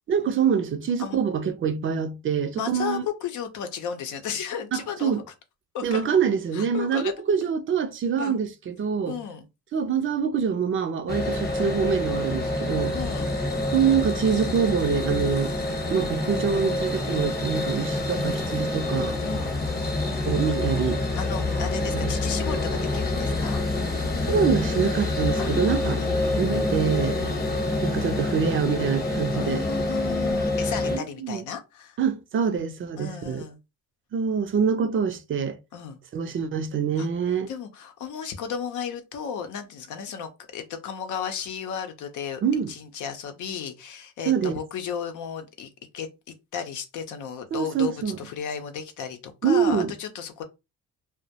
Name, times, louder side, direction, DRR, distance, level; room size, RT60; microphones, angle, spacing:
voice 1, 0.1-3.0 4.7-5.2 5.8-9.2 9.7-13.0 13.7-15.5 15.9-19.2 20.3-21.0 21.9-22.1 24.3-26.0 26.4-27.2 27.8-29.6 30.9-31.4 32.0-33.5 34.1-35.6 36.1-37.5 42.4-42.7 44.3-44.5 47.5-48.2 49.4-49.9, right 7 dB, 45° right, 0.4 m, -25 dB
voice 2, 2.6-5.2 5.7-6.1 6.5-7.1 7.4-7.5 8.2-8.4 9.1-9.5 12.9-13.3 19.2-19.6 21.1-23.6 25.4-26.2 27.2-27.4 29.3-32.0 33.0-33.6 35.7-36.0 37.0-37.1 37.5-42.4 42.7-50.4, left 7 dB, 75° left, 0.6 m, -34 dB
sound 1, 11.1-31.0, left 2 dB, 30° left, 0.9 m, -27 dB
2.2 x 2.0 x 2.7 m
cardioid pair, 90°, 30 cm